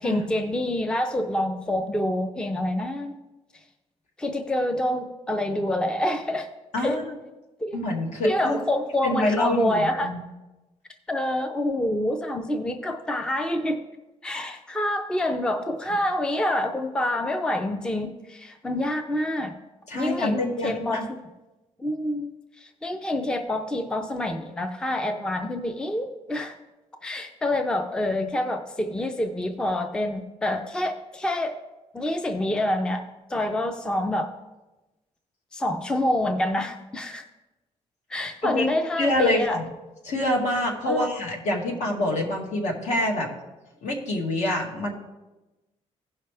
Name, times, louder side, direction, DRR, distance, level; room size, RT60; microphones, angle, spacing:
voice 1, 0.0-3.2 4.2-6.5 6.8-7.0 7.6-7.8 8.2-10.1 11.1-13.8 14.2-19.6 19.9-21.2 21.8-26.6 27.0-31.6 31.9-33.0 33.3-34.3 35.5-37.2 38.1-39.6 40.9-41.1, left 1 dB, 5° left, 7 dB, 0.4 m, -27 dB
voice 2, 6.7-7.0 7.7-8.6 9.0-10.2 19.9-21.1 38.4-38.7 39.0-39.6 40.0-43.3 43.8-44.9, left 1 dB, 75° left, 0 dB, 2.0 m, -26 dB
16.0 x 5.7 x 3.3 m, 1.1 s
cardioid pair, 170°, 12 cm